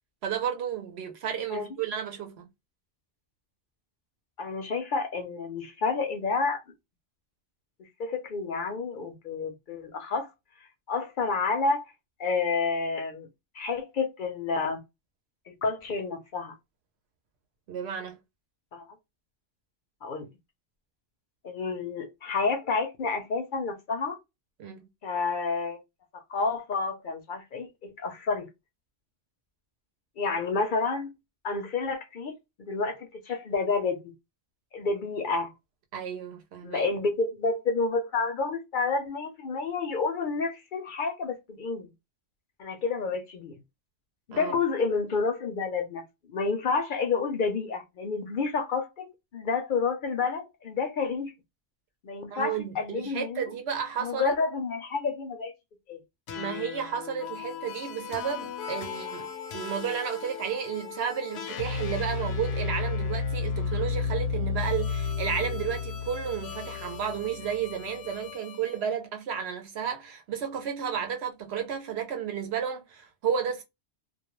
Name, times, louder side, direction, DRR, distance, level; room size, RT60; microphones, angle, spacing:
voice 1, 0.2-2.5 17.7-18.2 24.6-24.8 35.9-36.9 44.3-44.5 52.3-54.4 56.4-73.6, right 8 dB, 75° right, 0.9 m, -32 dB
voice 2, 4.4-6.6 8.0-10.3 10.9-11.9 12.2-13.3 13.5-14.8 15.5-16.5 18.7-18.9 20.0-20.3 21.4-24.2 25.0-25.8 26.3-28.5 30.2-31.1 31.4-34.1 34.7-35.5 36.6-41.9 42.6-43.6 44.3-46.0 46.3-51.3 52.0-53.4 54.0-55.5 55.9-56.0, left 4 dB, 60° left, 0.6 m, -29 dB
sound 1, 56.3-68.8, left 5 dB, 85° left, 0.8 m, -33 dB
2.3 x 2.1 x 2.9 m
omnidirectional pair, 1.1 m